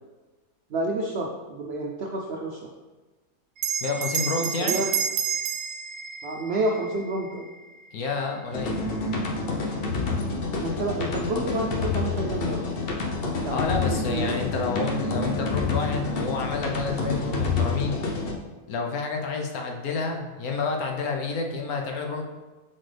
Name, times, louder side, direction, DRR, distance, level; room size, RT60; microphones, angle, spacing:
voice 1, 0.7-2.6 4.6-4.8 6.2-7.5 10.6-12.9 13.4-13.6 14.1-14.3, right 2 dB, 65° right, 0 dB, 0.6 m, -29 dB
Bell, 3.6-8.4, right 7 dB, 85° right, 1.1 m, -31 dB
voice 2, 3.8-4.8 7.9-9.0 13.5-18.0 18.7-22.2, left 4 dB, 70° left, 2 dB, 1.2 m, -29 dB
sound 1, 8.5-18.3, left 3 dB, 50° left, 0.8 m, -28 dB
7.6 x 4.4 x 3.3 m, 1.3 s
omnidirectional pair, 1.6 m